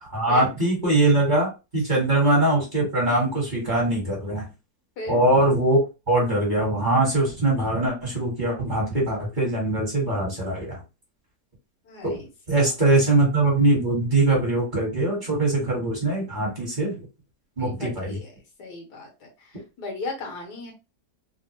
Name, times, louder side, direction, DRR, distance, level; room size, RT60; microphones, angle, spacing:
voice 1, 0.0-4.5 5.1-5.8 6.1-10.8 12.0-12.2 12.5-16.9 17.6-18.2, right 2 dB, 30° right, -3 dB, 1.3 m, -22 dB
voice 2, 11.8-12.7 17.6-18.3 18.6-20.7, left 2 dB, 85° left, 1 dB, 1.6 m, -37 dB
3.4 x 2.1 x 2.8 m, 0.28 s
omnidirectional pair, 1.7 m